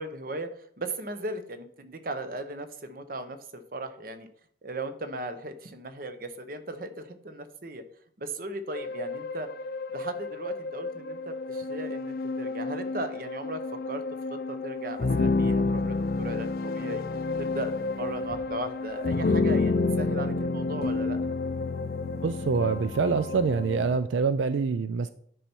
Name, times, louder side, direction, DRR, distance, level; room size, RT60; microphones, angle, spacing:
voice 1, 0.0-4.3 4.6-7.8 8.2-9.5 9.9-13.6 13.9-14.0 14.3-17.0 17.4-21.2, right 2 dB, 50° right, 9 dB, 0.8 m, -37 dB
sound 1, 8.7-24.0, left 3 dB, 50° left, 0.4 m, -30 dB
voice 2, 22.2-25.1, right 5 dB, 85° right, 12 dB, 0.4 m, -26 dB
10.0 x 5.6 x 4.5 m, 0.64 s
head